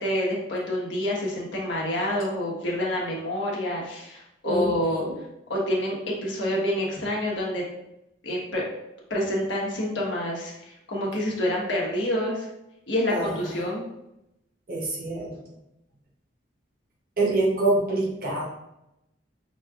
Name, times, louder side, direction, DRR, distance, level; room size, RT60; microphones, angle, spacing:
voice 1, 0.0-5.0 5.5-7.6 8.2-8.6 9.1-12.5 12.9-13.8, left 1 dB, 75° left, -3 dB, 1.3 m, -27 dB
voice 2, 4.4-5.2 13.1-13.6 14.7-15.4 17.2-18.4, right 2 dB, 50° right, -3 dB, 0.8 m, -26 dB
5.9 x 3.2 x 2.4 m, 0.87 s
head